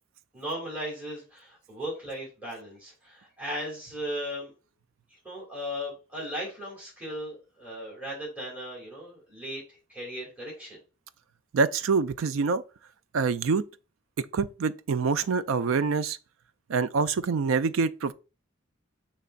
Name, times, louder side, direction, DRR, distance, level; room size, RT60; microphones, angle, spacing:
voice 1, 0.3-4.5 5.1-10.8, equal, 10° right, 2.0 m, -37 dB
voice 2, 11.5-12.6 13.1-13.6 14.2-16.2 16.7-18.1, right 5 dB, 85° right, 0.4 m, -26 dB
6.6 x 3.0 x 2.4 m
head